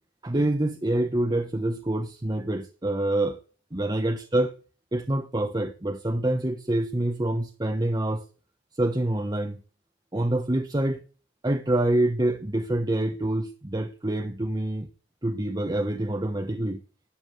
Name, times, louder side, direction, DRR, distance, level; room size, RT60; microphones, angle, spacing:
voice 1, 0.2-3.4 3.7-4.5 4.9-8.2 8.7-9.6 10.1-11.0 11.4-14.9 15.2-16.8, right 1 dB, 20° right, 1.0 m, -26 dB
13.0 x 9.6 x 9.6 m
head